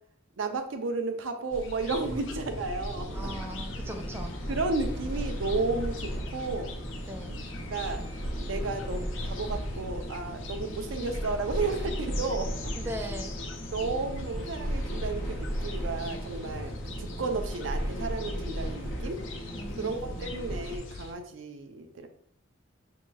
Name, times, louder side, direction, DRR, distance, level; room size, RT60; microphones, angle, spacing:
voice 1, 0.4-3.3 4.5-6.7 7.7-8.0 8.4-12.7 13.7-19.2 19.8-22.1, right 3 dB, 85° right, 6 dB, 0.5 m, -33 dB
sound 1, 1.5-21.1, left 3 dB, 85° left, 0.5 m, -44 dB
sound 2, 2.0-16.8, equal, 15° left, 0.7 m, -43 dB
sound 3, 3.1-20.8, equal, 60° left, 1.0 m, -36 dB
voice 2, 3.1-4.4 7.1-7.4 12.8-13.4 19.6-20.0, equal, 10° right, 3 dB, 0.3 m, -39 dB
6.1 x 2.9 x 2.3 m, 0.66 s
head